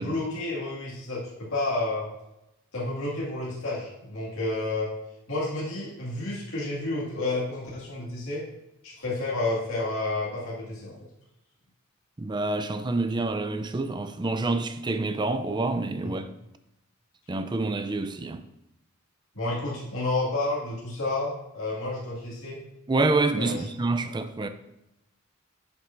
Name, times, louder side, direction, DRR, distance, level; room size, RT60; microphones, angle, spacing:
voice 1, 0.0-2.1 2.7-4.9 5.3-8.4 8.8-11.1 16.0-16.1 19.3-22.6 23.4-23.7, left 2 dB, 80° left, 2.0 m, -30 dB
voice 2, 12.2-16.3 17.3-18.4 22.9-24.5, right 2 dB, 20° right, 0.4 m, -27 dB
8.1 x 7.3 x 2.6 m
head